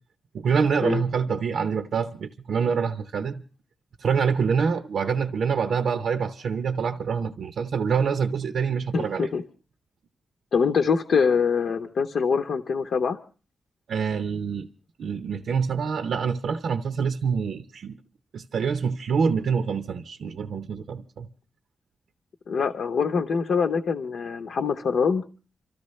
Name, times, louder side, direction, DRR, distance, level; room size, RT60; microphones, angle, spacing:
voice 1, 0.3-3.4 4.0-9.3 13.9-14.7 15.0-18.0 18.3-21.3, right 6 dB, 70° right, 0.7 m, -26 dB
voice 2, 8.9-9.4 10.5-13.2 22.5-25.2, left 5 dB, 65° left, 0.9 m, -24 dB
27.5 x 13.5 x 3.2 m
cardioid pair, 105°, 0 cm